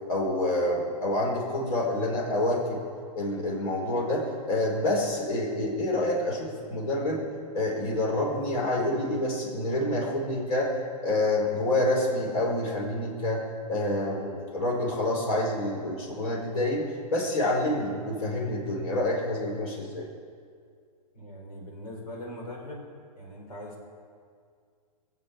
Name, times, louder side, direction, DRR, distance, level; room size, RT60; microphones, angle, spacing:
voice 1, 0.1-2.8 3.1-7.2 7.5-10.7 11.0-20.1, left 1 dB, 65° left, -3 dB, 4.6 m, -27 dB
voice 2, 21.1-22.8 23.1-23.8, left 1 dB, 90° left, -1 dB, 5.0 m, -41 dB
20.5 x 7.7 x 8.6 m, 2.2 s
hypercardioid pair, 135°, 20 cm